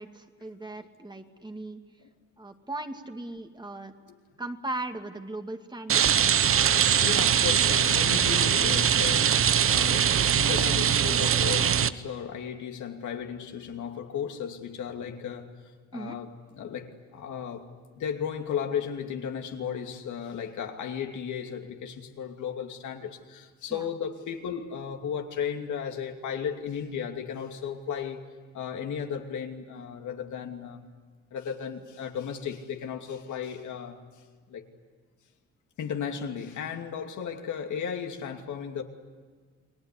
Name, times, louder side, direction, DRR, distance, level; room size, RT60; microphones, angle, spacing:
voice 1, 0.0-1.8 2.4-3.9 4.4-6.3 15.9-16.2 23.7-23.8, right 2 dB, 15° right, 5 dB, 2.3 m, -38 dB
Rain, 5.9-11.9, right 8 dB, 45° right, 0.9 m, -22 dB
voice 2, 7.0-9.4 9.7-15.5 15.9-17.7 18.0-28.2 28.5-30.8 31.3-34.0 34.5-34.6 35.8-38.8, left 7 dB, 75° left, 4 dB, 2.7 m, -35 dB
30.0 x 20.5 x 9.9 m, 1.5 s
cardioid pair, 90°, 30 cm